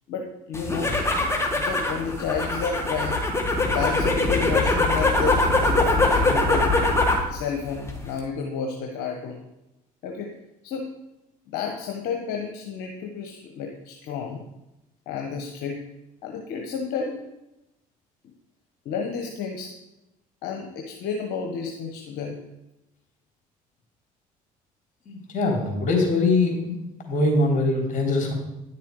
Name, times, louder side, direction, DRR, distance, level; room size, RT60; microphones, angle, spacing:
voice 1, 0.1-1.0 1.5-3.2 3.6-6.9 7.3-9.4 10.0-10.3 10.6-10.9 11.5-14.4 15.1-15.8 16.2-17.2 18.8-19.7 20.4-22.4, left 6 dB, 70° left, 2 dB, 1.2 m, -31 dB
sound 1, 0.5-7.3 7.6-8.2, left 2 dB, 15° left, 2.3 m, -22 dB
voice 2, 25.1-26.8 27.1-28.3, left 2 dB, 50° left, 0 dB, 3.6 m, -22 dB
10.5 x 6.7 x 4.8 m, 0.92 s
hypercardioid pair, 65°, 17 cm